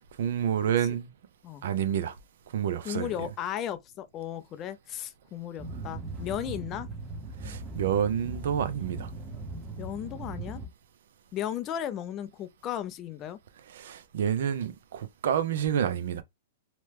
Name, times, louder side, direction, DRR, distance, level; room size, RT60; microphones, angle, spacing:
voice 1, 0.2-1.1 1.6-2.2 2.5-3.1 7.4-9.1 13.7-16.2, right 9 dB, 70° right, 0.5 m, -28 dB
voice 2, 2.8-6.9 9.8-10.6 11.3-13.4, left 10 dB, 30° left, 0.4 m, -35 dB
sound 1, 5.6-10.7, right 2 dB, 15° right, 0.8 m, -39 dB
3.0 x 2.1 x 3.3 m
hypercardioid pair, 140°, 0 cm